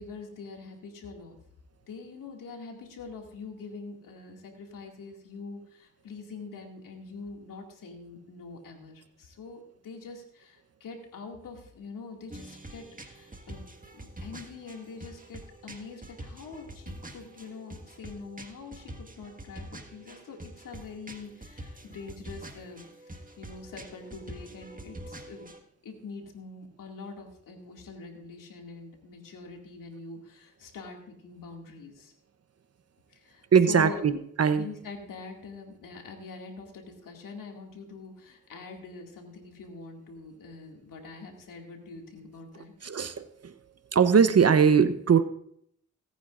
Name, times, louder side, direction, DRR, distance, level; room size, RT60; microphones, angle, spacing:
voice 1, 0.0-1.4 1.9-13.7 13.9-25.5 25.8-32.1 33.1-34.1 34.5-42.7, left 4 dB, 80° left, 2 dB, 2.4 m, -44 dB
sound 1, 12.3-25.6, right 1 dB, 25° right, 1.8 m, -45 dB
voice 2, 33.5-34.6 42.8-43.5 43.9-45.2, right 6 dB, 50° right, 11 dB, 0.9 m, -21 dB
18.5 x 9.2 x 2.6 m, 0.68 s
supercardioid pair, 45°, 32 cm